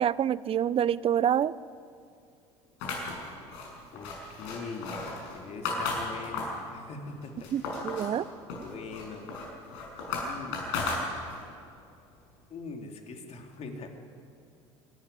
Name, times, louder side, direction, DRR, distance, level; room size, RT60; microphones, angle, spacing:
voice 1, 0.0-1.5 7.5-8.2, right 9 dB, 40° right, 20 dB, 0.6 m, -26 dB
sound 1, 2.8-6.7 7.1-8.1 8.5-11.5, left 3 dB, 75° left, 6.3 m, -35 dB
voice 2, 3.9-5.0 5.3-7.5 8.6-9.2 10.2-10.7 11.4-11.6 12.5-13.9, left 4 dB, 45° left, 3 dB, 3.2 m, -42 dB
25.0 x 12.0 x 9.9 m, 2.4 s
hypercardioid pair, 70°, 15 cm